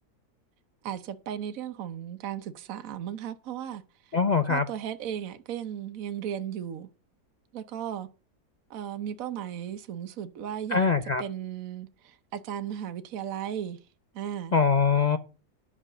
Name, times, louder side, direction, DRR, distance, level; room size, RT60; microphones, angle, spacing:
voice 1, 0.8-4.1 4.5-6.9 7.5-8.1 8.7-10.9 11.2-13.8 14.1-14.5, right 9 dB, 60° right, 1.2 m, -36 dB
voice 2, 4.1-4.7 10.7-11.2 14.5-15.2, left 5 dB, 65° left, 0.4 m, -23 dB
10.5 x 5.9 x 6.7 m
omnidirectional pair, 1.7 m